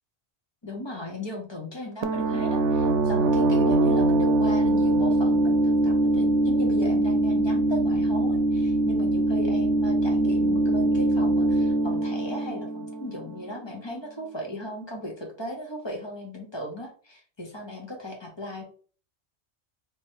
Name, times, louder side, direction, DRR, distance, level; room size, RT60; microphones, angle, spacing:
voice 1, 0.6-18.6, left 1 dB, 25° left, 0 dB, 1.1 m, -37 dB
sound 1, 2.0-13.5, right 2 dB, 85° right, 0.9 m, -23 dB
3.2 x 3.1 x 4.5 m, 0.41 s
omnidirectional pair, 1.2 m